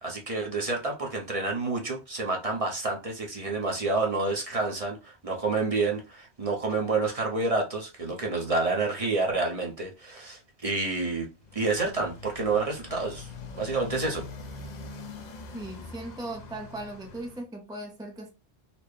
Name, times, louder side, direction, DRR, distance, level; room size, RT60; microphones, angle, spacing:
voice 1, 0.0-13.3 13.6-14.3, right 3 dB, 35° right, 0.8 m, -29 dB
Motorcycle, 11.4-17.4, left 4 dB, 50° left, 0.6 m, -43 dB
voice 2, 15.5-18.3, right 2 dB, 5° right, 0.4 m, -38 dB
4.2 x 2.1 x 3.2 m
omnidirectional pair, 1.1 m